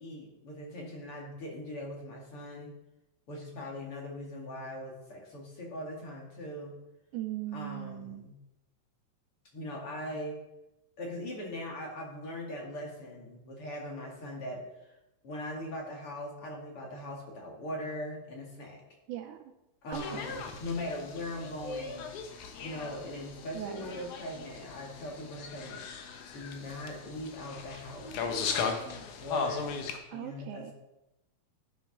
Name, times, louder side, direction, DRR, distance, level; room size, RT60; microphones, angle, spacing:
voice 1, 0.0-2.7 3.3-6.7 7.5-8.4 9.5-10.4 11.0-14.9 15.2-18.8 19.8-22.1 22.6-25.8 26.3-29.8 30.1-30.7, left 1 dB, 45° left, -1 dB, 2.7 m, -40 dB
voice 2, 7.1-8.3 19.1-19.4 19.9-20.4 23.5-23.9 30.1-30.7, right 12 dB, 80° right, 7 dB, 1.9 m, -39 dB
sound 1, 19.9-30.0, left 5 dB, 70° left, 2.4 m, -38 dB
11.5 x 7.0 x 5.8 m, 0.93 s
omnidirectional pair, 3.9 m